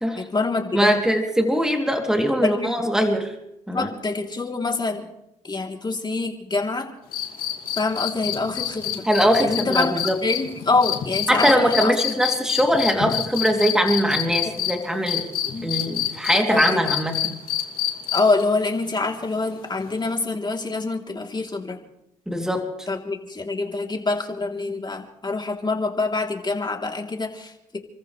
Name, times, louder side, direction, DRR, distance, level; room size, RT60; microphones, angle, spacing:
voice 1, 0.2-1.0 2.4-2.8 3.7-5.1 5.4-6.9 7.8-9.1 9.4-12.2 15.5-15.7 16.5-16.9 18.1-21.8 22.9-27.8, left 3 dB, 30° left, 2 dB, 3.3 m, -25 dB
voice 2, 0.7-3.3 3.7-3.9 9.1-10.2 11.3-15.3 15.6-17.4 22.3-22.7, equal, 5° right, 2 dB, 3.2 m, -21 dB
sound 1, 7.1-14.7 15.1-18.4 20.1-20.2, left 11 dB, 80° left, 2.8 m, -26 dB
30.0 x 14.5 x 3.4 m, 0.84 s
supercardioid pair, 60°, 15 cm